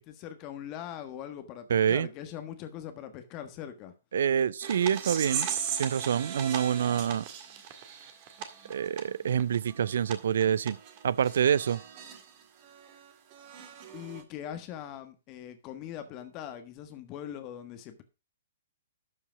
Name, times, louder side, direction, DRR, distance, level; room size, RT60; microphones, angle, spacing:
voice 1, 0.0-3.9 13.9-18.0, left 10 dB, 30° left, 1.3 m, -41 dB
voice 2, 1.7-2.1 4.1-5.5 5.8-7.3 8.7-11.8, right 8 dB, 60° right, 0.5 m, -27 dB
sound 1, 4.6-12.2 12.6-14.2, right 8 dB, 40° right, 1.9 m, -38 dB
12.5 x 5.5 x 4.8 m
figure-of-eight pair, 120°, 0 cm